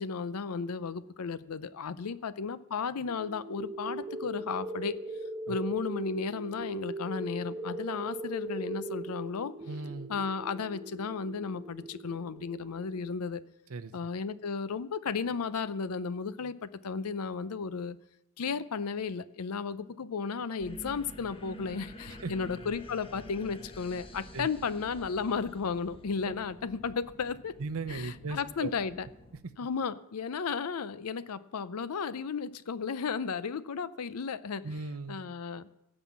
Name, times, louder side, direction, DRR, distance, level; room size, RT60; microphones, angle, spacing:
voice 1, 0.0-5.0 5.5-9.5 10.1-13.4 13.9-18.0 18.4-27.5 27.9-29.1 29.6-34.7 35.1-35.7, left 5 dB, 80° left, 16 dB, 0.5 m, -34 dB
sound 1, 3.1-13.1, right 2 dB, 30° right, 0.8 m, -40 dB
voice 2, 9.7-10.1 13.7-13.9 22.1-22.3 24.3-24.5 27.6-28.7 34.6-35.2, right 3 dB, 70° right, 11 dB, 0.7 m, -37 dB
sound 2, 20.6-29.4, equal, 25° left, 1.0 m, -49 dB
16.0 x 5.5 x 7.3 m, 0.84 s
head